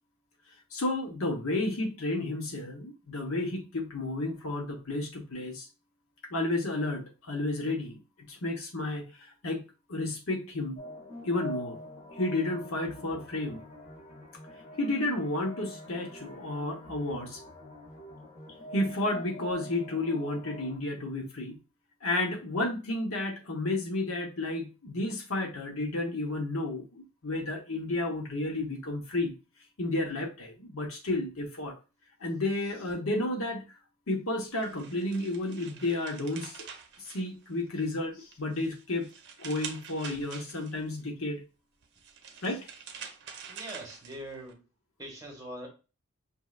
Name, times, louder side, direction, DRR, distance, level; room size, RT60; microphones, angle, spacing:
voice 1, 0.7-5.7 6.3-8.0 8.3-9.6 9.9-10.8 11.2-11.8 12.1-13.6 14.8-17.4 18.7-21.5 22.0-29.3 29.8-31.7 32.2-33.6 34.1-36.6 37.0-39.0 39.4-41.4 42.4-42.7, left 2 dB, 70° left, 1.1 m, -32 dB
sound 1, 10.8-20.8, equal, 35° left, 1.7 m, -45 dB
sound 2, 34.4-37.8 38.2-40.9 41.8-44.5, right 6 dB, 55° right, 0.8 m, -46 dB
voice 2, 43.5-44.6 45.0-45.7, right 1 dB, 15° right, 1.6 m, -42 dB
5.3 x 3.2 x 2.4 m
head